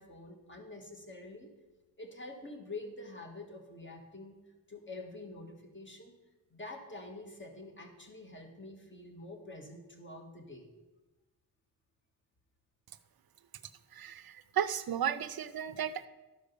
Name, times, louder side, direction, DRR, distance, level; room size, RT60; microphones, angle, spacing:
voice 1, 0.0-1.5 2.0-4.4 4.7-6.1 6.5-10.7, left 2 dB, 35° left, 3 dB, 1.7 m, -47 dB
voice 2, 13.9-16.1, right 9 dB, 85° right, 13 dB, 0.6 m, -34 dB
12.0 x 5.1 x 6.7 m, 1.1 s
wide cardioid pair, 95°, 36 cm